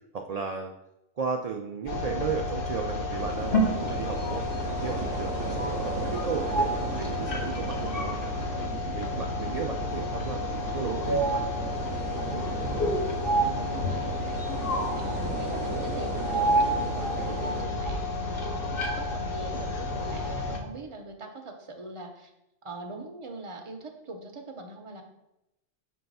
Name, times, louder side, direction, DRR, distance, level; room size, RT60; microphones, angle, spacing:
voice 1, 0.1-0.7 1.2-8.1 8.6-11.4, right 5 dB, 65° right, 3 dB, 0.3 m, -35 dB
sound 1, 1.9-20.6, left 1 dB, 50° left, 1.0 m, -30 dB
sound 2, 3.2-17.6, right 7 dB, 80° right, 0.9 m, -38 dB
voice 2, 12.3-12.7 13.3-22.3 22.6-25.0, right 1 dB, 30° right, 3 dB, 0.7 m, -42 dB
5.5 x 3.4 x 5.4 m, 0.87 s
omnidirectional pair, 1.2 m